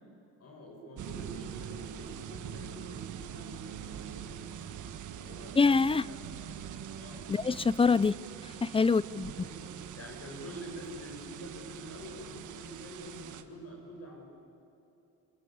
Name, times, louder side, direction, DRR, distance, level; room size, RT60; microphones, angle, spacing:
voice 1, 0.4-5.6 5.9-6.6 6.9-7.3 9.4-9.7 9.9-14.2, equal, 55° left, 0 dB, 5.6 m, -47 dB
sound 1, 1.0-13.4, right 9 dB, 80° right, 1.6 m, -43 dB
voice 2, 5.6-6.1 7.3-8.2 8.6-9.3, left 4 dB, 20° left, 20 dB, 0.5 m, -25 dB
25.5 x 22.0 x 8.8 m, 2.9 s
cardioid pair, 90°, 30 cm